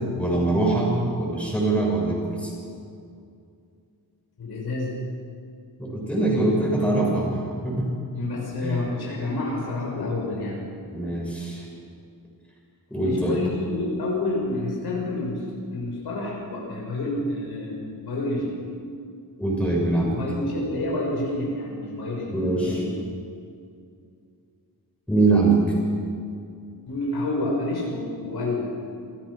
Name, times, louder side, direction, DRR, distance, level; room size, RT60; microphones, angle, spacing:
voice 1, 0.2-2.5 5.8-7.3 7.6-8.0 8.6-8.7 10.9-11.6 12.9-13.4 19.4-20.2 22.3-22.8 25.1-25.5, right 2 dB, 5° left, -4 dB, 7.2 m, -23 dB
voice 2, 4.4-4.9 8.1-10.6 13.0-15.4 15.7-18.5 20.1-22.9 26.9-28.7, left 2 dB, 80° left, -3 dB, 6.5 m, -29 dB
28.5 x 16.5 x 6.6 m, 2.4 s
wide cardioid pair, 135°, 38 cm